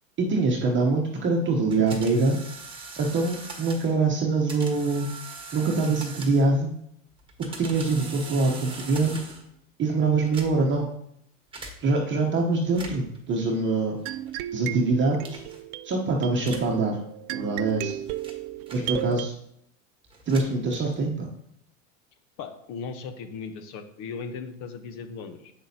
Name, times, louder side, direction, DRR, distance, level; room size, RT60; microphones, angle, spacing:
voice 1, 0.2-2.4 3.0-5.1 5.5-6.7 7.6-9.2 9.8-10.9 11.8-14.0 14.5-15.4 15.8-17.0 17.3-17.9 18.7-19.3 20.3-21.3, right 3 dB, 30° right, 0 dB, 0.9 m, -24 dB
sound 1, 1.7-4.0 4.5-6.6 7.2-9.5 10.2-10.8 11.5-11.8 12.6-13.2 14.1-14.4 15.2-15.6 16.4-16.8 17.5-19.3 20.1-21.1, right 3 dB, 15° right, 1.4 m, -42 dB
sound 2, 14.1-19.3, right 14 dB, 60° right, 0.5 m, -35 dB
voice 2, 22.4-25.5, left 5 dB, 55° left, 9 dB, 1.0 m, -37 dB
7.8 x 6.2 x 2.8 m, 0.75 s
supercardioid pair, 105°, 40 cm